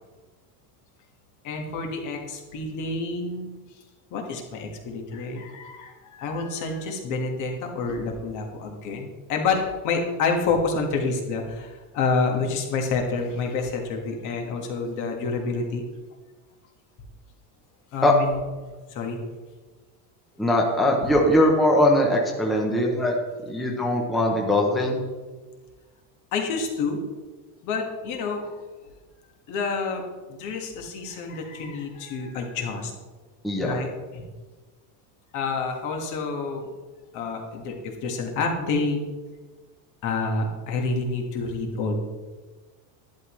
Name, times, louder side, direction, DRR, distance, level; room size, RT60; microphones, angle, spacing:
voice 1, 1.4-3.5 4.1-15.8 17.9-18.4 18.9-19.2 22.4-22.9 26.3-27.0 27.6-28.6 29.5-30.0 30.3-32.9 33.6-34.3 35.3-36.7 37.1-37.8 38.0-39.0 40.0-42.0, left 4 dB, 40° left, 2 dB, 1.6 m, -28 dB
voice 2, 20.4-23.2 23.5-25.0 33.4-33.7, left 1 dB, ahead, 0 dB, 0.5 m, -21 dB
12.0 x 10.5 x 3.1 m, 1.3 s
cardioid pair, 175°, 48 cm